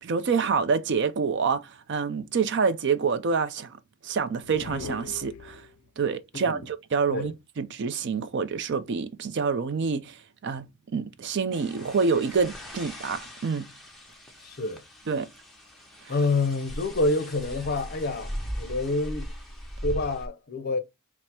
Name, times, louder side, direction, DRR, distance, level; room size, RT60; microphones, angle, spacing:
voice 1, 0.0-3.8 4.0-5.7 6.0-13.7 15.1-15.3 16.0-16.1, right 5 dB, 50° right, 0.4 m, -27 dB
sound 1, 4.4-6.0, left 5 dB, 85° left, 0.3 m, -41 dB
voice 2, 6.3-6.7 7.1-7.3 14.4-14.8 16.1-19.3 19.8-20.8, left 2 dB, 45° left, 0.6 m, -28 dB
sound 2, 11.5-20.3, equal, ahead, 0.7 m, -39 dB
4.5 x 2.0 x 4.2 m
head